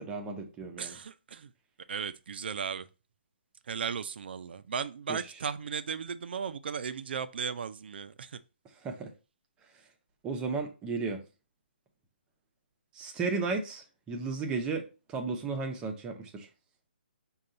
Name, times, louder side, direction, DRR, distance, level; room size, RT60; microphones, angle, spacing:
voice 1, 0.0-0.9 5.1-5.2 8.8-9.1 10.2-11.2 12.9-16.5, right 4 dB, 15° right, 0.6 m, -34 dB
voice 2, 0.8-1.5 1.9-2.9 3.7-8.4, right 6 dB, 65° right, 0.4 m, -36 dB
5.3 x 2.3 x 3.8 m
hypercardioid pair, 150°, 6 cm